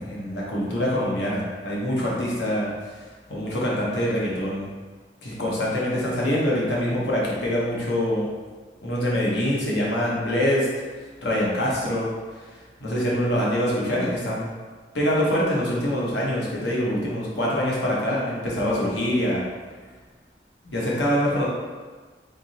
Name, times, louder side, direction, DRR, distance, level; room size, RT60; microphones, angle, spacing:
voice 1, 0.0-2.7 3.3-4.7 5.2-8.3 8.8-10.7 11.2-12.1 12.8-14.5 14.9-19.4 20.6-21.5, equal, 90° left, -5 dB, 1.1 m, -24 dB
3.7 x 3.5 x 2.8 m, 1.4 s
head